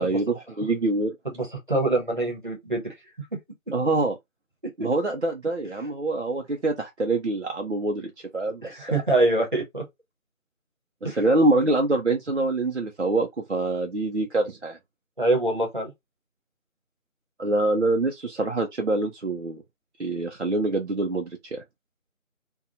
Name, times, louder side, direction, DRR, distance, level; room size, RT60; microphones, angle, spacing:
voice 1, 0.0-1.1 3.7-4.1 4.8-9.0 11.0-14.8 17.4-19.6 20.0-21.6, right 2 dB, 55° right, 0.5 m, -25 dB
voice 2, 1.2-2.9 8.6-9.8 11.0-11.2 15.2-15.9, right 2 dB, 35° right, 1.0 m, -24 dB
2.8 x 2.3 x 2.5 m
figure-of-eight pair, 175°, 42 cm